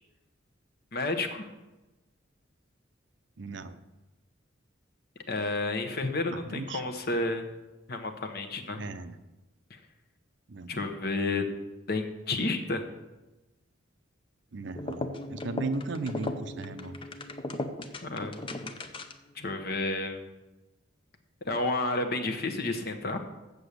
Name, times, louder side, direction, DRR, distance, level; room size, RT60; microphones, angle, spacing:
voice 1, 0.9-1.5 5.3-7.5 7.9-8.8 10.7-11.5 11.9-12.8 18.0-18.5 19.3-20.2 21.4-23.2, left 2 dB, 50° left, 6 dB, 0.9 m, -31 dB
voice 2, 3.4-3.8 6.3-6.8 8.7-9.2 10.5-10.8 14.5-17.0, right 3 dB, 65° right, 11 dB, 0.6 m, -36 dB
sound 1, 14.7-19.3, left 2 dB, 25° left, 0.6 m, -37 dB
7.9 x 7.0 x 6.6 m, 1.1 s
head